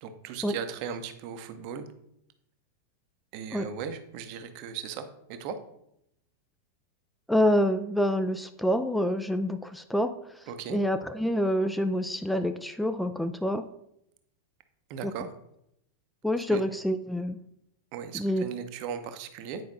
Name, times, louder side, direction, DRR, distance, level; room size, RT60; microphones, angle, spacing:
voice 1, 0.0-1.9 3.3-5.6 10.5-10.8 14.9-15.3 16.5-16.6 17.9-19.6, right 7 dB, 45° right, 9 dB, 0.7 m, -37 dB
voice 2, 7.3-13.7 16.2-17.4 18.1-18.4, equal, ahead, 8 dB, 0.3 m, -27 dB
9.1 x 5.0 x 2.6 m, 0.79 s
figure-of-eight pair, 90°, 0 cm